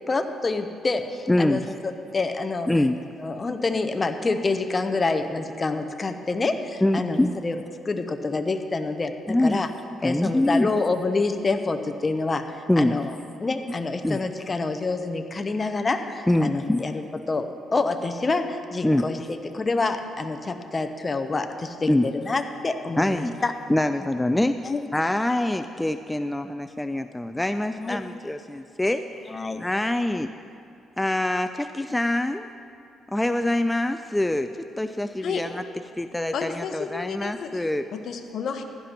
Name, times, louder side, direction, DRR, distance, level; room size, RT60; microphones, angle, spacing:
voice 1, 0.1-2.7 3.2-7.2 7.4-7.5 7.9-9.7 10.0-13.1 13.4-17.0 17.3-23.5 24.6-24.8 27.8-28.0 29.3-29.6, left 3 dB, 30° left, 6 dB, 0.7 m, -27 dB
voice 2, 1.3-1.7 2.7-3.0 6.8-7.4 9.3-9.6 10.0-10.7 12.7-12.9 14.0-14.2 16.3-16.9 18.8-19.0 21.9-22.1 23.0-23.4 23.7-24.6 24.9-30.3 31.0-32.5 33.1-35.6 36.0-37.9, left 1 dB, 10° left, 9 dB, 0.3 m, -24 dB
voice 3, 36.3-37.7 37.9-38.6, left 6 dB, 65° left, 6 dB, 0.9 m, -32 dB
15.5 x 11.0 x 3.0 m, 2.6 s
cardioid pair, 90°, 0 cm